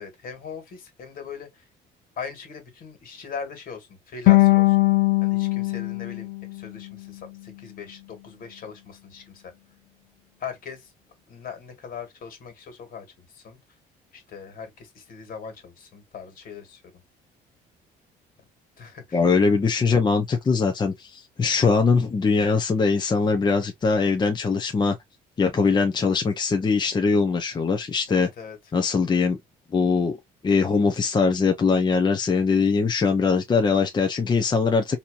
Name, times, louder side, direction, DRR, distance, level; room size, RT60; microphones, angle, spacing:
voice 1, 0.0-1.7 2.2-4.8 5.2-9.5 10.4-10.9 11.3-13.6 14.1-17.0 18.8-19.2 28.1-28.6, left 6 dB, 60° left, 2.0 m, -40 dB
sound 1, 4.3-7.4, left 21 dB, 85° left, 0.7 m, -21 dB
voice 2, 19.1-25.0 25.4-28.3 28.7-29.4 29.7-30.2 30.4-35.0, left 4 dB, 25° left, 0.7 m, -21 dB
4.2 x 2.8 x 2.5 m
cardioid pair, 110°, 17 cm